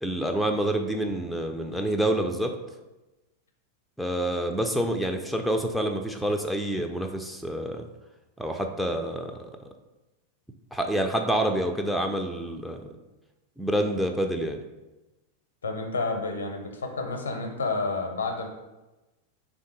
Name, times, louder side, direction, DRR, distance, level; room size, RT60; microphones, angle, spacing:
voice 1, 0.0-2.5 4.0-7.9 8.4-9.5 10.7-12.9 13.6-14.6, right 1 dB, ahead, 3 dB, 0.3 m, -27 dB
voice 2, 15.6-18.5, left 3 dB, 70° left, 4 dB, 0.6 m, -30 dB
3.5 x 2.6 x 3.8 m, 1.1 s
figure-of-eight pair, 90°, 0 cm